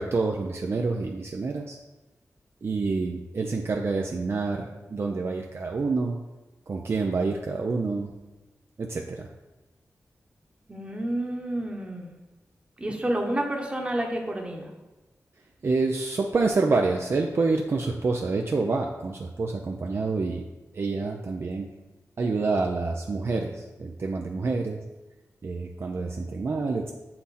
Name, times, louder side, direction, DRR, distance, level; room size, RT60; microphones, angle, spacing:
voice 1, 0.0-1.8 2.6-6.2 6.7-8.1 8.8-9.3 15.6-20.4 20.7-21.7 22.2-24.8 25.4-26.9, right 3 dB, 50° right, 1 dB, 0.5 m, -27 dB
voice 2, 10.7-12.1 12.8-14.7, right 1 dB, 20° right, 1 dB, 1.1 m, -29 dB
7.5 x 5.8 x 4.2 m, 1.1 s
wide cardioid pair, 145°, 6 cm